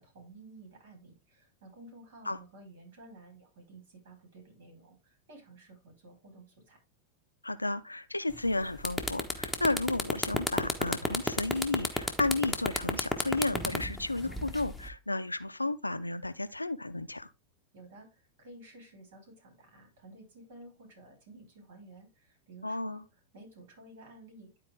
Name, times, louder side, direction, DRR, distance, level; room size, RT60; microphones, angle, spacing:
voice 1, 0.0-6.8 17.7-23.0 23.3-24.5, right 2 dB, 55° right, 4.8 m, -53 dB
voice 2, 7.4-17.3 22.6-23.0, left 2 dB, 85° left, 0.6 m, -32 dB
sound 1, 8.3-8.5 8.8-14.9, left 2 dB, ahead, 1.3 m, -31 dB
11.5 x 4.5 x 3.6 m
figure-of-eight pair, 90°, 0 cm